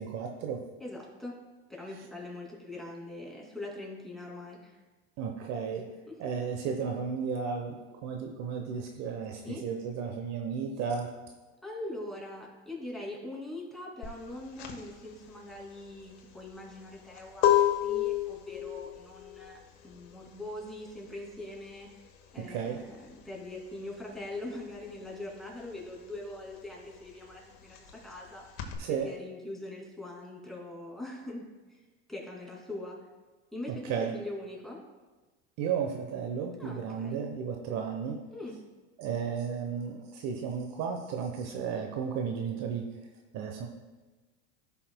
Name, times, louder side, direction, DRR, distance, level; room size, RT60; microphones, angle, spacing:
voice 1, 0.0-0.6 5.2-5.9 6.2-11.1 22.4-22.8 28.8-29.1 33.7-34.1 35.6-38.2 39.0-42.8 43.3-43.7, right 6 dB, 55° right, 3 dB, 1.0 m, -34 dB
voice 2, 0.8-1.4 1.7-4.8 6.1-6.2 9.4-9.6 11.6-19.6 19.8-21.9 22.3-23.0 23.2-28.4 28.9-31.8 32.1-33.1 33.5-34.8 36.6-37.2 38.3-38.6, left 1 dB, ahead, -3 dB, 2.5 m, -42 dB
sound 1, 14.0-24.3 24.5-28.7, left 12 dB, 70° left, 1.2 m, -31 dB
14.5 x 5.7 x 2.2 m, 1.2 s
supercardioid pair, 105°, 34 cm